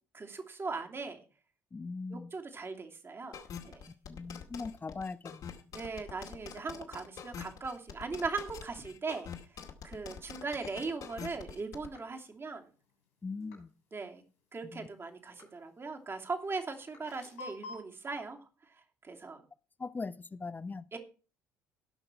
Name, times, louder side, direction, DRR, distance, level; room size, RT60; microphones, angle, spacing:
voice 1, 0.1-1.2 2.1-3.8 5.7-9.3 9.8-12.6 13.9-14.2 14.5-18.4 19.0-19.4 20.9-21.0, right 4 dB, 30° right, 2.8 m, -39 dB
voice 2, 1.7-2.3 4.1-5.5 13.2-13.7 14.7-14.9 19.8-20.9, left 4 dB, 25° left, 0.9 m, -40 dB
sound 1, 3.3-11.9, left 7 dB, 55° left, 2.3 m, -45 dB
sound 2, 11.4-13.8 14.2-17.8, left 3 dB, 85° left, 5.8 m, -51 dB
18.0 x 6.1 x 4.5 m
hypercardioid pair, 55°, 8 cm